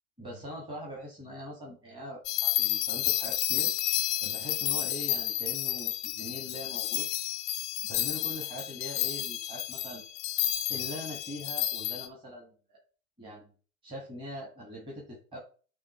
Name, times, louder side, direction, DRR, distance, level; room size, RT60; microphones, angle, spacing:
voice 1, 0.2-3.7 4.2-7.0 7.9-10.0 10.7-12.8 13.2-13.5 13.8-15.4, equal, 10° right, -3 dB, 1.8 m, -42 dB
sound 1, 2.3-12.1, left 13 dB, 20° left, 0.3 m, -31 dB
8.6 x 3.0 x 4.4 m, 0.40 s
hypercardioid pair, 105°, 42 cm